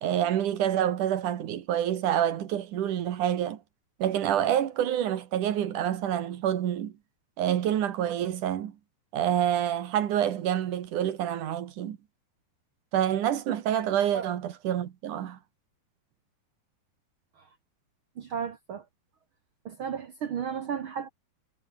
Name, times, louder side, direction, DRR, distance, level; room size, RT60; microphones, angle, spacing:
voice 1, 0.0-3.6 4.0-6.9 7.4-8.8 9.1-12.0 12.9-15.4, right 10 dB, 60° right, 2.8 m, -27 dB
voice 2, 18.2-18.8 19.6-21.1, right 7 dB, 80° right, 1.1 m, -34 dB
omnidirectional pair, 4.4 m